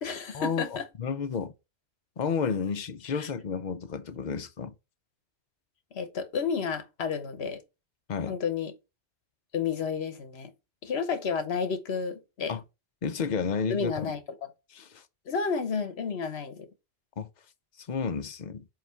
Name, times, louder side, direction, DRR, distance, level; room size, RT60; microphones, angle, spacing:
voice 1, 0.0-0.9 3.2-3.3 5.9-7.6 8.3-8.7 9.5-10.5 10.8-12.5 13.7-14.2 15.3-16.7, left 5 dB, 70° left, 1.2 m, -31 dB
voice 2, 1.0-1.5 2.2-4.7 8.1-8.4 12.5-12.6 13.0-14.1 14.7-15.0 17.2-17.3 17.9-18.6, left 6 dB, 50° left, 0.7 m, -31 dB
7.6 x 2.6 x 5.5 m
omnidirectional pair, 1.1 m